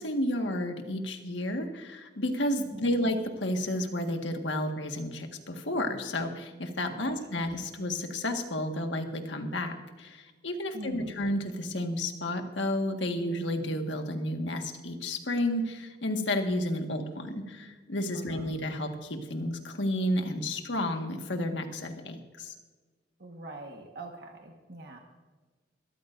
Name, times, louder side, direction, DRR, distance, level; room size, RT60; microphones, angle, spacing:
voice 1, 0.0-22.5, left 1 dB, 90° left, 4 dB, 1.7 m, -31 dB
voice 2, 2.6-3.0 6.9-7.5 10.7-11.2 18.1-18.5 23.2-25.0, right 2 dB, 65° right, 2 dB, 1.5 m, -44 dB
22.0 x 13.5 x 2.6 m, 1.3 s
head